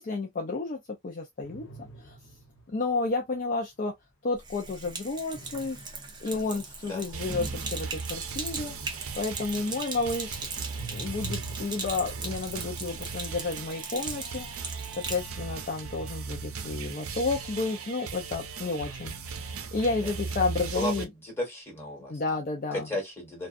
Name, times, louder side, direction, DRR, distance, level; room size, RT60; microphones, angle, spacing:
voice 1, 0.0-2.2 2.7-3.9 4.2-5.8 6.2-8.7 9.2-10.5 10.9-14.5 14.9-19.1 19.4-21.1 22.1-22.9, left 3 dB, 40° left, 0.4 m, -31 dB
sound 1, 1.4-3.1 5.3-9.1 9.4-12.4, right 2 dB, 70° left, 0.9 m, -46 dB
Sink (filling or washing), 4.3-15.3, right 4 dB, 20° right, 0.6 m, -39 dB
voice 2, 6.3-7.0 20.0-20.1 20.7-22.2 22.7-23.5, left 1 dB, 10° left, 1.5 m, -35 dB
sound 2, 7.1-21.0, right 5 dB, 80° right, 0.5 m, -38 dB
2.4 x 2.3 x 2.4 m
head